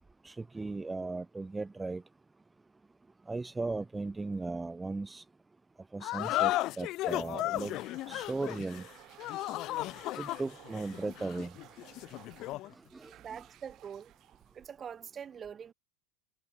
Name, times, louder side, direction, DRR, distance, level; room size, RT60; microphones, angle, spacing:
voice 1, 0.2-2.0 3.3-5.2 5.9-7.8 8.1-8.9 10.2-11.5 12.9-13.1, right 3 dB, 10° right, 0.7 m, -37 dB
sound 1, 6.0-12.7, left 17 dB, 50° left, 2.0 m, -35 dB
sound 2, 7.4-15.0, right 15 dB, 45° right, 7.1 m, -56 dB
voice 2, 13.2-14.1 14.5-15.7, right 7 dB, 30° right, 1.1 m, -44 dB
hypercardioid pair, 100°, 0 cm